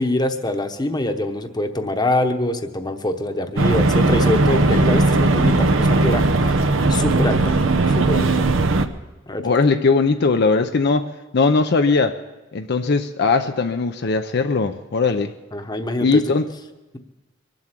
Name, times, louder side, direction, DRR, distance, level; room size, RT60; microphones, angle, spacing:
voice 1, 0.0-7.6 7.9-8.5 9.3-9.5 15.5-16.3, left 1 dB, 20° left, 6 dB, 1.0 m, -24 dB
sound 1, 3.6-8.9, right 2 dB, 80° right, 0.8 m, -17 dB
voice 2, 9.4-11.1 11.3-12.2 12.5-15.3 16.0-16.5, left 4 dB, 55° left, 7 dB, 0.6 m, -19 dB
23.5 x 7.9 x 7.5 m, 1.1 s
head